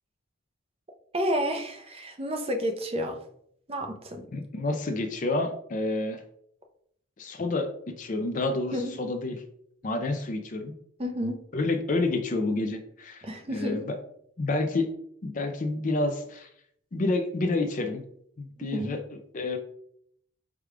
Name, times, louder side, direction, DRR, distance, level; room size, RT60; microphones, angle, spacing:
voice 1, 1.1-3.2 3.7-4.3 8.7-8.9 11.0-11.4 13.2-13.9 18.7-19.0, equal, 25° right, 4 dB, 0.5 m, -30 dB
voice 2, 4.3-6.2 7.2-7.7 8.0-9.4 9.8-10.7 11.5-14.0 14.4-14.9 15.2-16.5 16.9-18.0 18.4-19.6, left 2 dB, 35° left, 5 dB, 0.4 m, -29 dB
4.8 x 2.3 x 4.8 m, 0.68 s
head